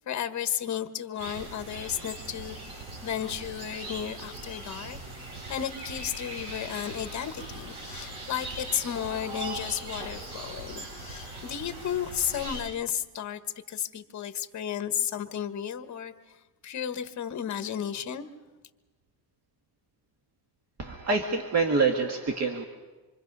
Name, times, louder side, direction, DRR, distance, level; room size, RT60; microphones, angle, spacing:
voice 1, 0.1-2.6 3.0-13.4 13.7-16.4 16.6-18.3, left 9 dB, 45° left, 9 dB, 1.3 m, -33 dB
sound 1, 1.2-12.6, right 2 dB, 65° right, 7.2 m, -40 dB
voice 2, 20.8-22.6, right 4 dB, 40° right, 3 dB, 1.8 m, -26 dB
26.5 x 24.0 x 5.4 m, 1.2 s
cardioid pair, 135°, 41 cm